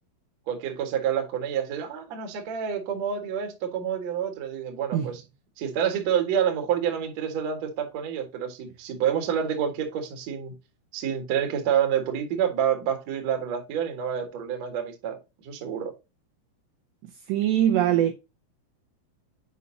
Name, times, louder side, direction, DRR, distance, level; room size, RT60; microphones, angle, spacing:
voice 1, 0.5-5.2 5.6-10.5 10.9-15.2 15.4-15.9, right 8 dB, 60° right, 1.8 m, -28 dB
voice 2, 17.3-18.1, right 11 dB, 80° right, 2.5 m, -22 dB
8.1 x 5.3 x 2.7 m
omnidirectional pair, 5.7 m